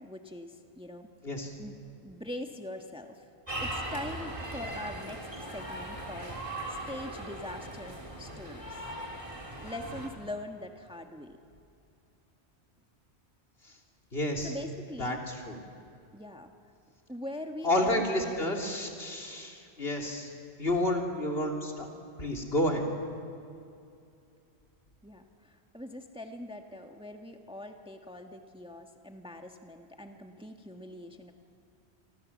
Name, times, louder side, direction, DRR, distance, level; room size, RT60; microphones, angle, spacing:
voice 1, 0.0-1.1 1.6-1.8 2.0-3.2 3.6-6.4 6.7-8.8 9.6-11.4 14.4-15.2 16.1-16.5 17.1-18.3 25.0-31.3, left 1 dB, 5° right, 4 dB, 1.5 m, -42 dB
sound 1, 3.5-10.1, right 1 dB, 30° right, 3.5 m, -39 dB
voice 2, 14.1-14.5 15.0-15.6 17.6-20.3 20.6-21.9 22.2-22.8, left 1 dB, 65° left, 1 dB, 3.5 m, -30 dB
29.5 x 24.5 x 7.4 m, 2.5 s
omnidirectional pair, 1.1 m